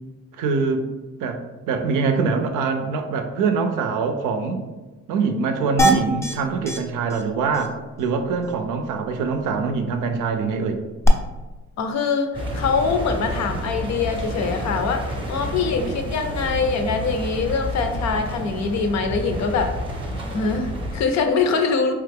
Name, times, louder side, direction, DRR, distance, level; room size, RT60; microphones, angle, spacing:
voice 1, 0.4-0.8 1.2-1.4 1.7-4.7 5.1-10.8, right 4 dB, 90° right, 6 dB, 0.5 m, -24 dB
sound 1, 5.8-6.3 6.7-6.8 7.1-7.2 7.5-7.7 11.0-11.1, right 1 dB, 10° left, 0.3 m, -20 dB
voice 2, 11.8-19.8 20.3-21.9, left 4 dB, 65° left, 6 dB, 0.5 m, -23 dB
sound 2, 12.3-21.0, equal, 15° right, 0.7 m, -30 dB
3.0 x 2.3 x 3.4 m, 1.2 s
cardioid pair, 90°, 30 cm